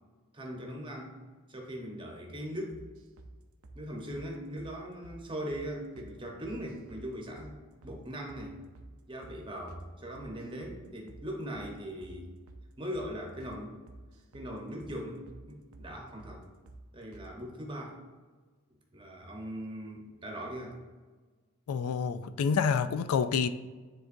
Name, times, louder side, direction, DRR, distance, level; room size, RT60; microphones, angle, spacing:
voice 1, 0.3-1.2 1.5-2.8 3.7-7.6 7.8-8.6 9.1-12.3 12.8-13.8 14.3-16.5 16.9-18.0 18.9-20.8, equal, 20° right, 1.0 m, -40 dB
sound 1, 2.7-3.3 3.6-3.8 4.1-4.3 4.6-4.7 5.0-5.2 5.5-5.7 6.0-6.1 6.4-7.1 7.4-7.5 7.8-8.0 8.3-8.4 8.7-8.9 9.2-9.4 9.7-9.8 10.1-10.8 11.1-11.2 11.5-11.7 12.0-12.2 12.5-12.6 12.9-13.1 13.4-13.6 13.9-14.5 14.8-15.0 15.3-15.4 15.7-15.9 16.2-16.4 16.7-16.8 17.1-17.3, right 2 dB, 70° right, 0.6 m, -50 dB
voice 2, 21.7-23.5, left 6 dB, 75° left, 0.3 m, -28 dB
9.7 x 3.7 x 2.6 m
head